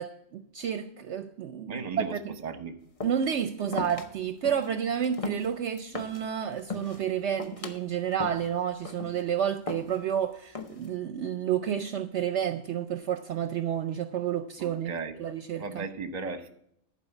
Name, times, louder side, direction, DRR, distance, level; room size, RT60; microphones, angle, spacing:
voice 1, 0.0-1.8 2.2-2.3 3.0-14.9 15.2-15.8, right 9 dB, 65° right, 10 dB, 0.8 m, -30 dB
voice 2, 1.7-2.8 14.6-15.2 15.6-16.5, right 4 dB, 35° right, 9 dB, 0.9 m, -36 dB
sound 1, 3.0-3.4 3.7-4.1 4.4-4.7 5.0-6.3 6.6-7.0 7.4-7.8 8.2-8.5 8.8-9.2 9.7-10.1 10.5-11.0, left 4 dB, 30° left, 0.7 m, -37 dB
11.5 x 4.7 x 8.0 m, 0.72 s
omnidirectional pair, 1.4 m